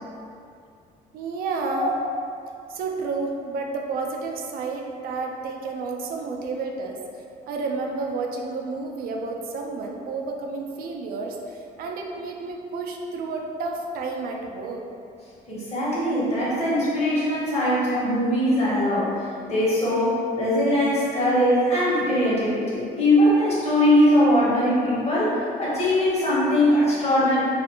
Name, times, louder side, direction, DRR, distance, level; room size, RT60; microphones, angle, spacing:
voice 1, 1.1-2.0 2.7-7.0 7.5-14.8, right 3 dB, 60° right, 1 dB, 0.4 m, -31 dB
voice 2, 15.5-19.1 19.4-27.4, left 1 dB, 40° left, -8 dB, 1.0 m, -21 dB
2.5 x 2.4 x 2.8 m, 2.4 s
cardioid pair, 110°, 17 cm